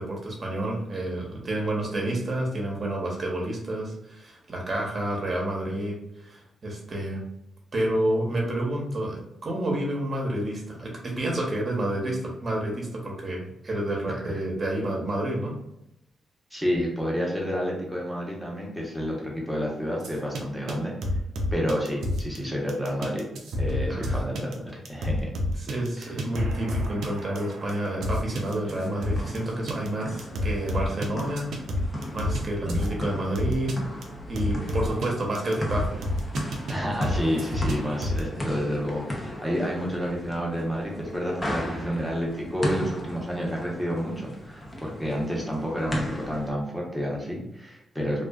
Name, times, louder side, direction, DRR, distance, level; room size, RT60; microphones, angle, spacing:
voice 1, 0.0-7.2 7.7-15.5 23.9-24.2 25.7-31.5 32.1-33.7 34.3-36.1, right 1 dB, 40° right, -2 dB, 0.9 m, -29 dB
voice 2, 16.5-20.9 21.5-23.2 23.6-25.3 26.0-26.1 32.6-32.8 36.7-48.2, equal, ahead, -3 dB, 1.0 m, -30 dB
sound 1, 20.0-20.4 20.7-20.8 21.0-22.4 22.7-29.4 29.7-29.9 30.2-32.4 32.7-32.9 33.3-33.7 34.0-34.1 34.3-35.1 35.3-36.7 37.0-38.2, left 1 dB, 80° right, 0.5 m, -28 dB
sound 2, 28.7-46.5, equal, 20° left, 0.7 m, -36 dB
2.4 x 2.3 x 2.3 m, 0.84 s
cardioid pair, 65°, 0 cm